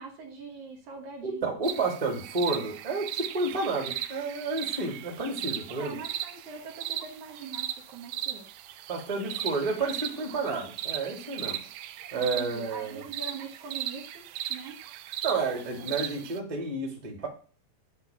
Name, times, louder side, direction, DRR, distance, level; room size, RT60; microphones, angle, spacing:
voice 1, 0.0-1.5 5.7-8.5 12.1-14.8, right 5 dB, 65° right, 1 dB, 2.3 m, -43 dB
voice 2, 1.2-6.0 8.9-11.6 12.1-13.0 15.2-17.3, right 3 dB, 15° right, 1 dB, 1.6 m, -31 dB
sound 1, 1.6-16.4, right 12 dB, 80° right, 1.9 m, -37 dB
9.7 x 4.1 x 7.0 m, 0.38 s
omnidirectional pair, 4.2 m